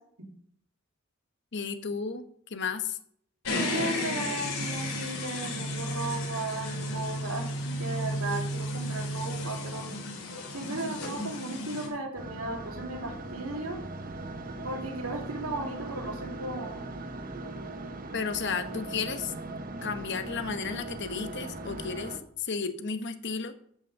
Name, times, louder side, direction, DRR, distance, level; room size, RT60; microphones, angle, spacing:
voice 1, 1.5-2.2 2.5-3.0 18.1-19.3 19.8-23.5, left 5 dB, 55° left, 9 dB, 1.1 m, -33 dB
sound 1, 3.4-11.9, left 1 dB, 90° left, 3.8 m, -33 dB
voice 2, 3.7-9.9 10.5-13.8 14.6-16.9, right 2 dB, 85° right, 2 dB, 2.7 m, -36 dB
sound 2, 12.2-22.2, right 2 dB, 40° right, 0.9 m, -39 dB
13.0 x 6.1 x 6.5 m, 0.66 s
head